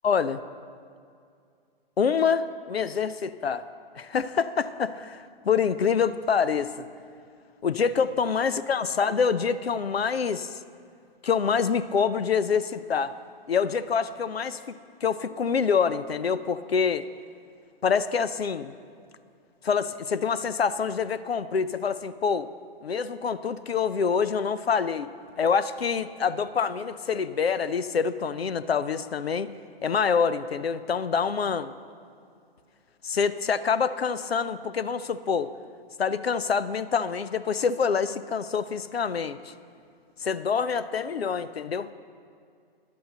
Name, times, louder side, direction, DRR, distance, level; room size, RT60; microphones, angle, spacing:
voice 1, 0.0-0.4 2.0-3.7 3.9-6.9 7.6-10.6 11.2-13.2 13.5-14.6 15.0-17.0 17.8-18.7 19.6-22.5 22.8-25.1 25.4-29.5 29.8-31.7 33.0-35.5 36.0-39.5 40.2-41.9, left 6 dB, 85° left, 14 dB, 0.5 m, -26 dB
11.0 x 7.7 x 6.7 m, 2.3 s
figure-of-eight pair, 115°, 30 cm